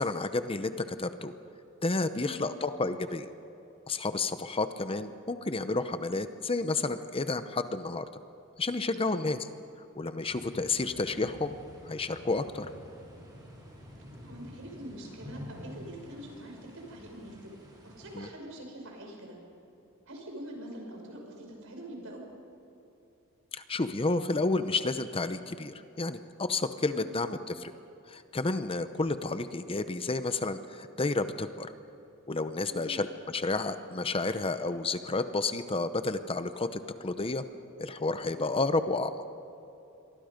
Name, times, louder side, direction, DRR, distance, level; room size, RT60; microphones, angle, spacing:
voice 1, 0.0-1.3 1.8-3.3 3.9-8.0 8.6-9.5 10.0-11.5 11.9-12.7 18.2-18.3 23.5-27.7 28.1-31.7 32.3-37.4 37.8-39.1, left 3 dB, 25° left, 10 dB, 0.8 m, -31 dB
voice 2, 2.2-2.5 8.9-9.4 14.2-17.5 17.8-19.4 20.1-22.2 26.9-27.2 32.7-33.0 38.4-38.6, right 1 dB, 65° right, 1 dB, 5.8 m, -44 dB
sound 1, 10.3-18.2, equal, 20° right, 5.0 m, -49 dB
27.5 x 23.5 x 5.2 m, 2.9 s
head